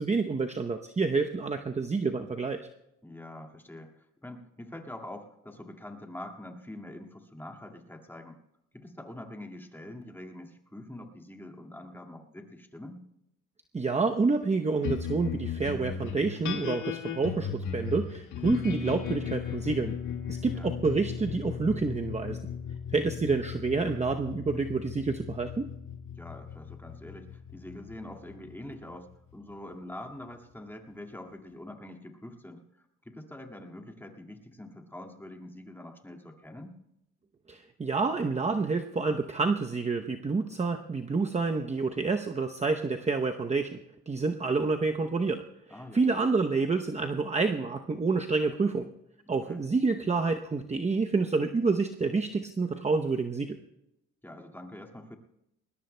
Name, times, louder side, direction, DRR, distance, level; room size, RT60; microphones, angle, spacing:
voice 1, 0.0-2.6 13.7-19.9 20.3-22.4 22.9-25.7 37.5-43.8 44.1-45.4 45.9-48.9 49.3-53.6, right 4 dB, 20° right, 5 dB, 0.8 m, -28 dB
voice 2, 3.0-8.4 8.7-13.0 20.5-20.7 26.2-36.8 45.7-46.0 49.3-49.6 54.2-55.2, left 1 dB, 5° left, 3 dB, 2.0 m, -45 dB
sound 1, 14.8-29.5, left 7 dB, 80° left, 1.9 m, -37 dB
21.0 x 19.5 x 2.2 m, 0.84 s
cardioid pair, 90°, 30 cm